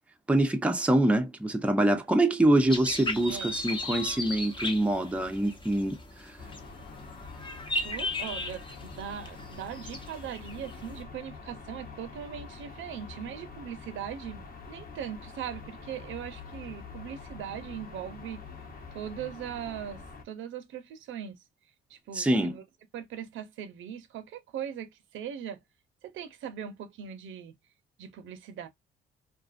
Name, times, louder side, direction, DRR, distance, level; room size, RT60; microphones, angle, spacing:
voice 1, 0.3-6.0 22.1-22.6, right 1 dB, 5° right, 0.5 m, -25 dB
sound 1, 2.7-11.0, left 2 dB, 25° left, 0.8 m, -37 dB
sound 2, 6.4-20.2, left 4 dB, 50° left, 1.0 m, -46 dB
voice 2, 7.8-18.4 18.9-21.4 21.9-22.6 22.9-25.6 26.0-27.5 28.0-28.7, right 9 dB, 80° right, 0.7 m, -40 dB
2.5 x 2.3 x 2.4 m
cardioid pair, 90°, 20 cm